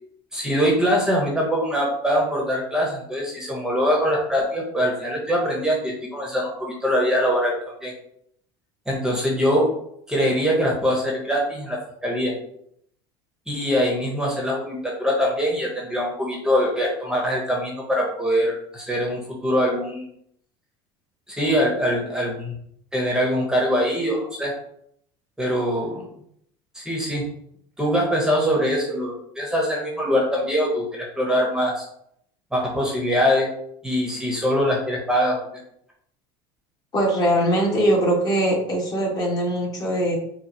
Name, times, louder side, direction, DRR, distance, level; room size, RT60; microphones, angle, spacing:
voice 1, 0.3-7.5 7.8-7.9 8.9-9.7 10.1-12.3 13.5-20.0 21.3-22.5 22.9-24.5 25.4-26.1 26.7-27.2 27.8-31.9 32.5-33.5 33.8-35.4, equal, 5° right, -2 dB, 1.2 m, -23 dB
voice 2, 36.9-40.2, right 1 dB, 30° left, -2 dB, 1.7 m, -21 dB
4.7 x 2.3 x 4.7 m, 0.70 s
supercardioid pair, 110°, 12 cm